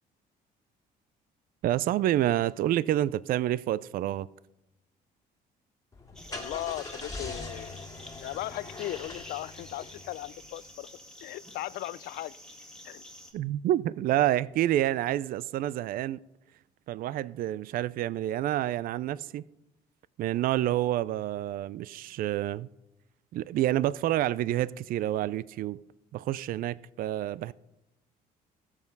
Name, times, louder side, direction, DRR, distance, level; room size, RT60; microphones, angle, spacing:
voice 1, 1.6-4.3 13.3-16.2 16.9-19.4 20.2-22.7 23.3-25.8 26.1-27.5, right 13 dB, 60° right, 0.4 m, -28 dB
Car / Engine starting, 5.9-10.6, left 2 dB, 20° left, 2.1 m, -42 dB
sound 1, 6.2-13.3, left 1 dB, 5° left, 2.1 m, -48 dB
voice 2, 6.3-7.7 8.2-10.9 11.2-12.4 12.8-13.0 20.6-20.7, left 15 dB, 70° left, 0.4 m, -37 dB
15.5 x 7.3 x 5.3 m
cardioid pair, 110°, 17 cm